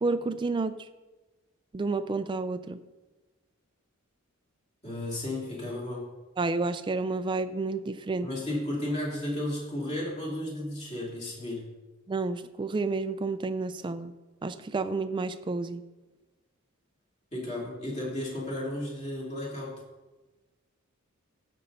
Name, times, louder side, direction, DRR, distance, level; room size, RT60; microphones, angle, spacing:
voice 1, 0.0-0.7 1.7-2.8 6.4-8.3 12.1-14.1 14.4-15.8, right 3 dB, 20° right, 11 dB, 0.3 m, -30 dB
voice 2, 4.8-6.1 8.2-11.7 17.3-19.8, left 1 dB, 30° left, -4 dB, 2.7 m, -33 dB
15.5 x 5.4 x 4.0 m, 1.2 s
head